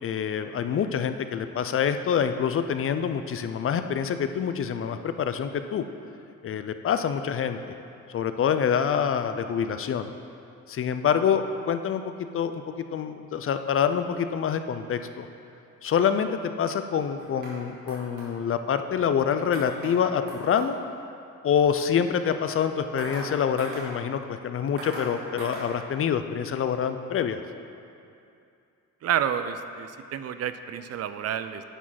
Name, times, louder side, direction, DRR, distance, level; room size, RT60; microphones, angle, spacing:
voice 1, 0.0-5.8 6.4-7.6 8.1-10.1 10.7-12.0 12.3-15.3 15.8-20.8 21.4-27.4, left 7 dB, 45° left, 9 dB, 0.5 m, -26 dB
sound 1, 17.2-17.5 17.9-18.3 19.5-19.9 20.3-20.7 23.0-23.3 23.6-23.9 24.8-25.1 25.4-25.7, right 1 dB, 90° right, 2.1 m, -38 dB
voice 2, 29.0-31.6, right 9 dB, 55° right, 11 dB, 0.5 m, -29 dB
10.0 x 5.0 x 5.8 m, 2.6 s
cardioid pair, 90°, 30 cm